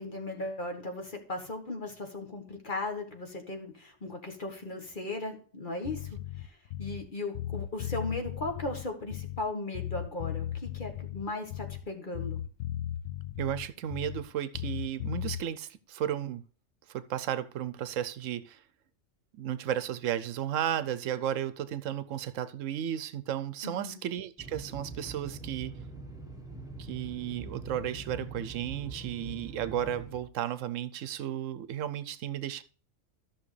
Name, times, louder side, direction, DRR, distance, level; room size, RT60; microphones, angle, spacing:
voice 1, 0.0-6.5 6.8-12.4 23.6-24.0, left 2 dB, 40° left, 1.6 m, -37 dB
Bass guitar, 5.8-7.1 7.3-9.5 9.7-11.9 12.1-14.3 14.5-15.4, left 11 dB, 80° left, 1.0 m, -37 dB
voice 2, 13.4-16.4 16.9-18.6 19.4-25.7 26.8-32.6, right 10 dB, 80° right, 1.0 m, -34 dB
sound 1, 24.4-30.2, right 2 dB, 5° right, 1.2 m, -43 dB
13.5 x 6.2 x 3.2 m
omnidirectional pair, 1.3 m